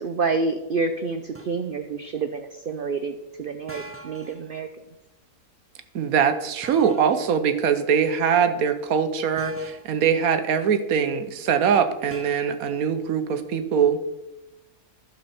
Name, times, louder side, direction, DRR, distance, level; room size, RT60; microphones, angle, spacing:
voice 1, 0.0-4.7, right 4 dB, 90° right, 7 dB, 0.4 m, -28 dB
sound 1, 1.3-1.6 3.7-4.4 6.6-7.2 9.4-10.0 12.1-12.4, right 1 dB, 20° right, 0.3 m, -41 dB
voice 2, 5.9-14.0, right 7 dB, 70° right, 9 dB, 1.3 m, -22 dB
11.5 x 6.8 x 4.2 m, 0.97 s
omnidirectional pair, 1.6 m